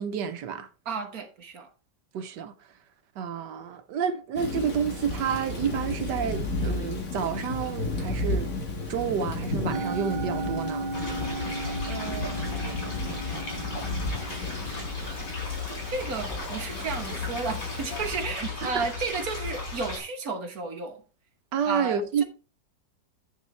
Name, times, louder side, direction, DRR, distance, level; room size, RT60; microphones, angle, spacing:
voice 1, 0.0-0.7 2.1-2.5 3.2-8.5 8.9-10.9 18.6-18.8 21.5-22.2, right 7 dB, 80° right, 1.5 m, -29 dB
voice 2, 0.9-1.7 11.9-12.6 15.9-21.0 21.6-22.2, right 4 dB, 60° right, 1.7 m, -33 dB
Thunder / Rain, 4.4-18.2, left 2 dB, 55° left, 2.2 m, -34 dB
Musical instrument, 9.7-16.1, right 2 dB, 30° right, 1.8 m, -36 dB
sound 1, 10.9-20.0, left 4 dB, 90° left, 4.9 m, -35 dB
9.3 x 6.6 x 3.3 m
omnidirectional pair, 1.8 m